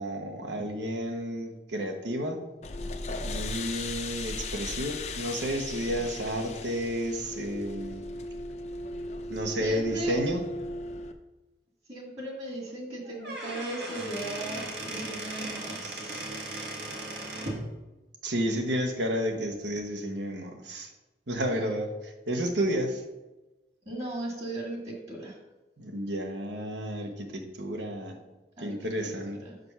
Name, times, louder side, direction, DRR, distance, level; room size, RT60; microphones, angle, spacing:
voice 1, 0.0-2.4 3.2-8.0 9.3-10.4 18.2-20.9 21.3-23.0 25.8-28.2 28.6-29.4, equal, 90° right, 4 dB, 1.1 m, -31 dB
sound 1, 2.6-11.1, left 2 dB, 40° left, 0.5 m, -36 dB
voice 2, 9.6-10.2 11.9-16.2 21.5-21.6 23.9-25.4 28.6-28.8 29.0-29.5, right 1 dB, 35° right, -1 dB, 1.8 m, -37 dB
Squeak / Wood, 13.1-17.6, right 2 dB, 70° right, 1.6 m, -37 dB
6.1 x 5.2 x 5.6 m, 1.1 s
head